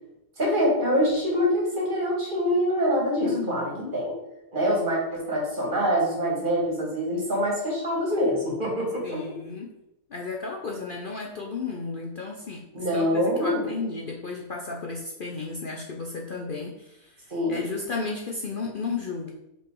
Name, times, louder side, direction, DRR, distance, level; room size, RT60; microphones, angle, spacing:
voice 1, 0.4-4.1 4.5-9.2 12.7-13.7 17.3-17.7, equal, 35° right, -4 dB, 2.0 m, -25 dB
voice 2, 3.2-4.0 9.0-9.7 10.1-19.3, left 4 dB, 55° left, 0 dB, 0.6 m, -34 dB
5.3 x 4.0 x 4.7 m, 0.88 s
omnidirectional pair, 1.6 m